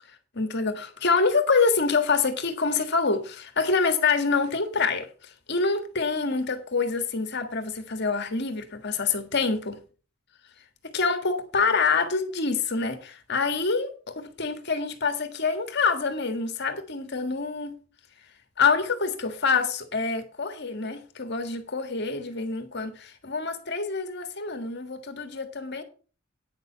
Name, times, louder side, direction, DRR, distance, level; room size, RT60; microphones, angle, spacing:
voice 1, 0.3-9.8 10.9-17.7 18.6-25.8, left 4 dB, 55° left, 1.7 m, -26 dB
9.6 x 6.8 x 5.6 m
head